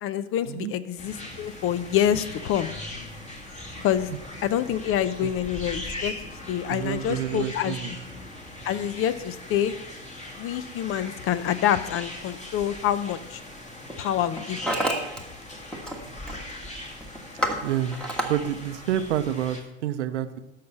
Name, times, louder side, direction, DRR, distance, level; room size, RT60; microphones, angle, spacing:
voice 1, 0.0-2.7 3.8-4.1 4.4-6.1 6.5-7.7 8.6-9.8 10.4-13.4 14.0-14.9, left 10 dB, 40° left, 15 dB, 0.7 m, -26 dB
sound 1, 1.0-19.6, left 1 dB, 20° left, 2.0 m, -39 dB
voice 2, 4.1-4.5 4.7-4.8 5.2-5.3 6.7-8.0 17.6-20.4, right 11 dB, 85° right, 10 dB, 0.8 m, -29 dB
Hammer, 12.7-12.9 13.7-14.0 14.2-15.2 15.5-16.0 16.3-16.6 17.0-18.3, right 1 dB, 5° left, 1.5 m, -29 dB
13.0 x 5.7 x 5.5 m, 0.97 s
supercardioid pair, 110°, 34 cm